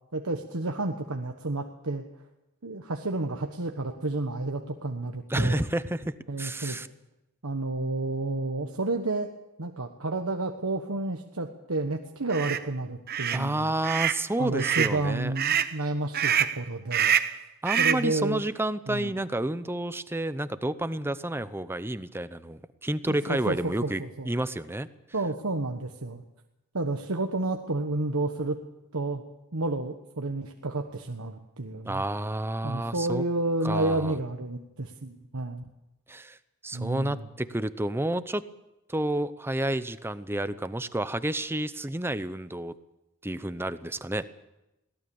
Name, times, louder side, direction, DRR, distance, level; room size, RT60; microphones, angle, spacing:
voice 1, 0.1-2.0 2.6-5.6 6.3-6.8 7.4-9.3 9.6-13.7 14.4-17.1 17.8-18.4 18.9-19.1 23.3-24.3 25.1-26.2 26.7-28.6 28.9-29.2 29.5-32.0 32.6-35.6 36.7-37.3, right 2 dB, 85° right, 4 dB, 1.3 m, -30 dB
voice 2, 5.3-6.9 13.3-15.3 17.6-24.0 24.3-24.9 31.8-33.2 33.6-34.1 36.1-36.4 36.6-38.4 38.9-42.7 43.2-44.2, right 1 dB, 10° right, 13 dB, 0.7 m, -30 dB
sound 1, 12.3-12.6 13.1-13.4 13.8-14.2 14.6-15.0 15.4-15.7 16.1-16.6 16.9-17.4 17.7-18.1, right 9 dB, 45° right, 0.9 m, -25 dB
22.0 x 17.5 x 7.1 m, 0.94 s
head